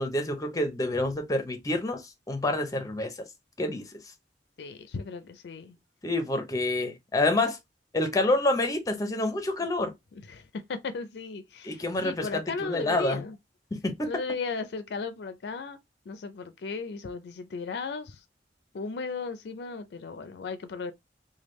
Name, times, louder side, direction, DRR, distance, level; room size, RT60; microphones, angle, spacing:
voice 1, 0.0-3.1 3.6-3.8 6.0-7.6 7.9-9.9 11.6-13.2 13.7-14.1, left 2 dB, 20° left, 0.6 m, -28 dB
voice 2, 4.6-5.8 9.6-9.7 10.3-13.4 14.0-15.8 16.1-18.2 18.7-20.9, left 4 dB, 65° left, 0.4 m, -36 dB
3.4 x 2.2 x 3.0 m
head